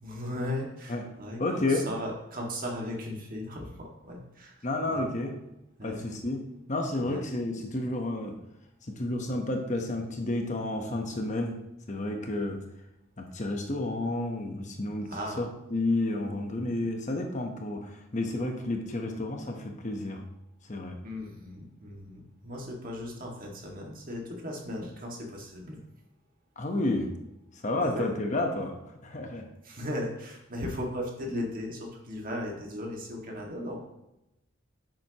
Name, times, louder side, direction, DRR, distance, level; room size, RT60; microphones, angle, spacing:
voice 1, 0.0-4.6 4.9-5.1 5.8-6.0 7.0-7.2 15.1-15.4 21.0-25.8 27.8-28.1 29.6-33.9, left 1 dB, 40° right, 0 dB, 1.9 m, -37 dB
voice 2, 1.4-1.9 4.6-5.4 5.8-6.4 6.7-8.3 8.9-11.6 11.9-12.6 13.2-15.1 15.4-20.2 20.7-21.0 26.6-27.1 27.5-28.8 29.0-29.5, left 2 dB, 35° left, 3 dB, 1.0 m, -31 dB
10.0 x 7.7 x 3.0 m, 0.91 s
head